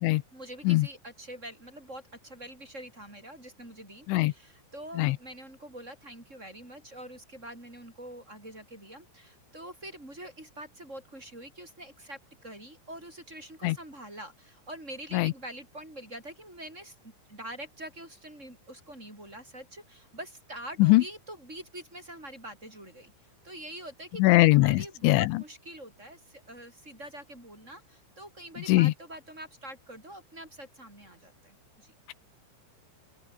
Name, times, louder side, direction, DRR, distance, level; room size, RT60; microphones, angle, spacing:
voice 1, 0.3-23.1 23.4-31.9, right 1 dB, 15° right, 6.8 m, -45 dB
voice 2, 24.2-25.4 28.7-28.9, left 19 dB, 85° left, 3.1 m, -21 dB
open air
omnidirectional pair, 5.4 m